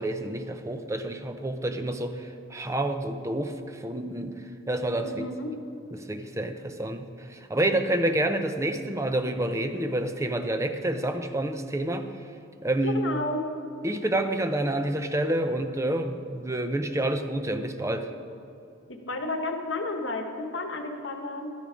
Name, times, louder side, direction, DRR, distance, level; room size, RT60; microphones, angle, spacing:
voice 1, 0.0-4.4 4.7-5.3 5.9-12.1 12.6-13.0 13.8-18.1, right 1 dB, 15° right, 7 dB, 0.6 m, -28 dB
voice 2, 5.0-5.6 12.8-13.5 18.9-21.5, left 2 dB, 65° left, 5 dB, 1.2 m, -32 dB
12.0 x 10.0 x 5.1 m, 2.6 s
head